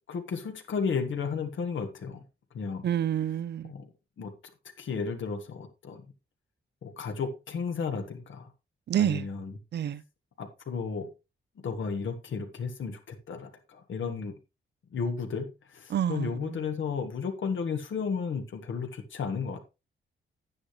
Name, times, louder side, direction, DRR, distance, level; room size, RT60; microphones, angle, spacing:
voice 1, 0.1-2.2 2.5-2.9 3.7-3.9 4.2-4.3 4.8-6.0 6.8-8.5 9.0-9.5 10.4-11.1 11.6-14.3 14.9-19.6, left 5 dB, 70° left, 1.5 m, -33 dB
voice 2, 2.8-3.7 8.9-9.2 9.7-10.0 15.9-16.5, right 10 dB, 55° right, 0.5 m, -28 dB
9.7 x 9.7 x 3.1 m
wide cardioid pair, 160°, 21 cm